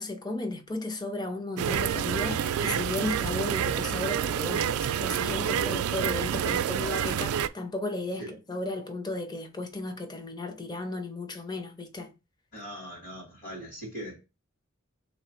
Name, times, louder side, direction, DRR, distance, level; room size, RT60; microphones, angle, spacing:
voice 1, 0.0-12.1, left 2 dB, 20° left, 0.6 m, -34 dB
sound 1, 1.6-7.5, right 9 dB, 80° right, 0.3 m, -28 dB
voice 2, 12.5-14.2, equal, 45° left, 1.8 m, -40 dB
3.6 x 3.1 x 4.3 m
head